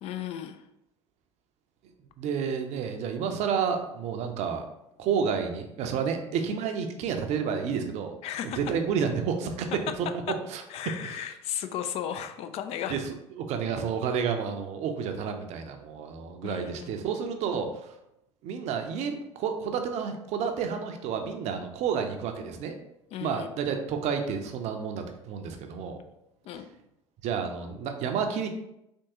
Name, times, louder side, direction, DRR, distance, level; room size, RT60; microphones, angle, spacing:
voice 1, 0.0-0.6 8.2-8.6 10.7-13.0 16.4-16.9 23.1-23.5 26.5-26.7, left 10 dB, 45° left, 9 dB, 0.4 m, -35 dB
voice 2, 2.2-4.6 5.0-8.1 8.4-9.7 10.0-10.1 10.5-10.6 11.0-11.3 12.9-13.0 13.4-17.9 18.4-22.7 23.2-26.0 26.5-26.6 27.2-28.5, right 6 dB, 50° right, 5 dB, 0.6 m, -30 dB
3.5 x 2.9 x 2.8 m, 0.84 s
figure-of-eight pair, 70°, 15 cm